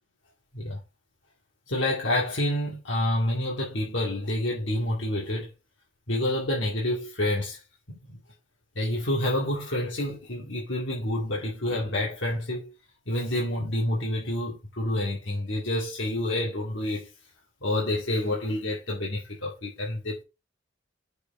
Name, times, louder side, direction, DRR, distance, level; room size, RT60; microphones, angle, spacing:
voice 1, 1.7-5.5 6.1-7.6 8.1-8.2 8.8-12.7 13.1-17.1 17.6-20.2, left 1 dB, 75° left, 2.3 m, -28 dB
6.7 x 4.5 x 5.3 m
head